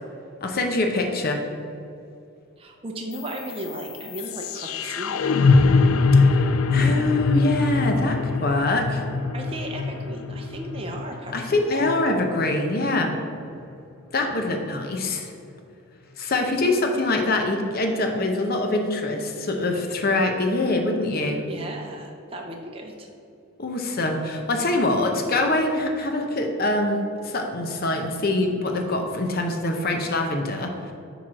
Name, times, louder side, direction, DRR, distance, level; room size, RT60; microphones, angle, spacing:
voice 1, 0.4-1.4 6.2-9.0 11.3-13.1 14.1-15.3 16.2-21.4 23.6-27.0 27.2-30.9, left 2 dB, 45° left, 3 dB, 0.7 m, -24 dB
voice 2, 2.6-5.3 9.3-12.0 21.5-23.1, right 1 dB, 25° right, 1 dB, 0.6 m, -35 dB
sound 1, 3.1-13.2, left 3 dB, 75° left, 0.4 m, -23 dB
8.4 x 3.1 x 6.2 m, 2.6 s
head